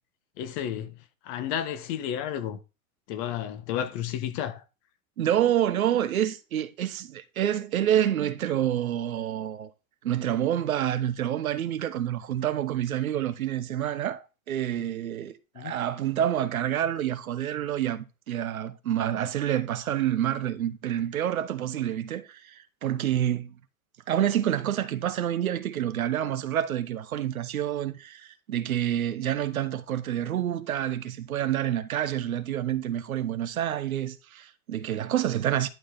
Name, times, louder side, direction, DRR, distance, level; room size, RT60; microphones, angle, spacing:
voice 1, 0.4-1.0 1.2-2.6 3.1-4.6 15.5-15.7, left 10 dB, 50° left, 1.5 m, -32 dB
voice 2, 5.2-9.7 10.0-23.5 24.1-35.7, right 11 dB, 75° right, 1.1 m, -28 dB
11.0 x 4.8 x 4.0 m
hypercardioid pair, 95°, 43 cm